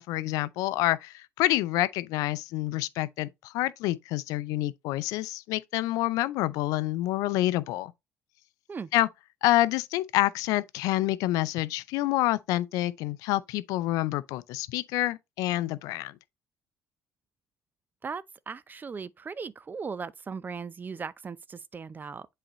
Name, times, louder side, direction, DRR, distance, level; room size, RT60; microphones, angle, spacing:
voice 1, 0.0-7.9 8.9-9.1 9.4-16.1, left 16 dB, 80° left, 0.5 m, -27 dB
voice 2, 18.0-22.3, right 5 dB, 30° right, 0.6 m, -38 dB
7.8 x 4.2 x 3.0 m
supercardioid pair, 75°, 6 cm